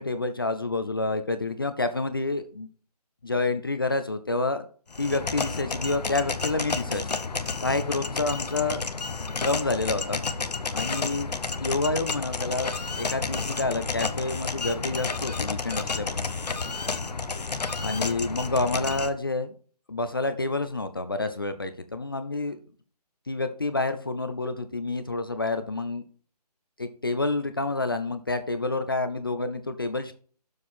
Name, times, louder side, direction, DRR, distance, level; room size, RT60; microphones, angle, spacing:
voice 1, 0.0-2.7 3.2-4.7 5.0-7.1 7.6-8.8 9.4-10.2 10.7-11.3 11.6-16.3 17.8-19.5 19.9-22.6 23.3-26.0 26.8-30.1, left 3 dB, 35° left, 10 dB, 0.6 m, -28 dB
sound 1, 4.9-19.1, left 4 dB, 80° left, 1.1 m, -31 dB
7.3 x 6.3 x 4.5 m, 0.42 s
hypercardioid pair, 180°, 21 cm